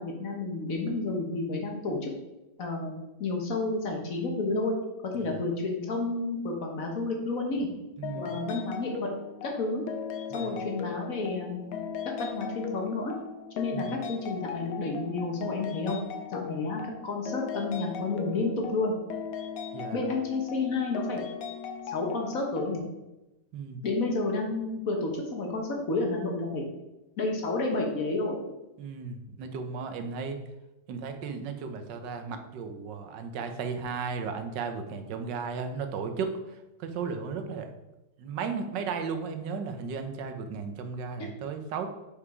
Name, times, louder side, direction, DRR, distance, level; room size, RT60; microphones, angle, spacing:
voice 1, 0.0-2.1 2.6-2.9 3.2-4.8 5.0-7.7 8.1-9.1 9.4-9.8 10.3-11.8 12.0-13.1 13.6-16.0 16.3-18.9 19.9-21.2 21.9-22.8 23.8-26.6 27.2-28.4, left 3 dB, 55° left, 1 dB, 1.5 m, -30 dB
sound 1, 8.0-22.8, left 7 dB, 90° left, 1.4 m, -38 dB
voice 2, 8.0-8.3 10.3-10.6 13.7-13.9 19.7-20.0 23.5-23.8 28.8-30.4 30.9-37.7 38.2-41.9, right 5 dB, 90° right, 7 dB, 1.4 m, -35 dB
5.4 x 5.0 x 4.8 m, 0.99 s
omnidirectional pair, 1.9 m